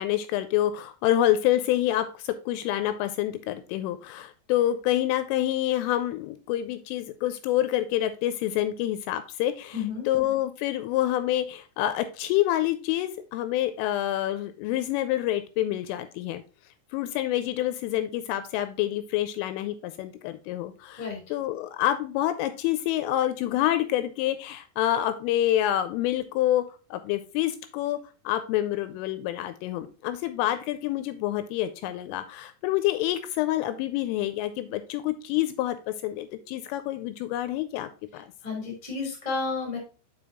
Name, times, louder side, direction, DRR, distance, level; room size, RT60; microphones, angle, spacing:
voice 1, 0.0-16.4 16.9-26.6 26.9-28.0 28.3-38.3, left 13 dB, 85° left, 11 dB, 3.0 m, -27 dB
voice 2, 9.7-10.0 21.0-21.2 38.4-39.8, left 4 dB, 15° left, 0 dB, 1.2 m, -31 dB
6.9 x 5.1 x 3.6 m, 0.35 s
omnidirectional pair, 5.9 m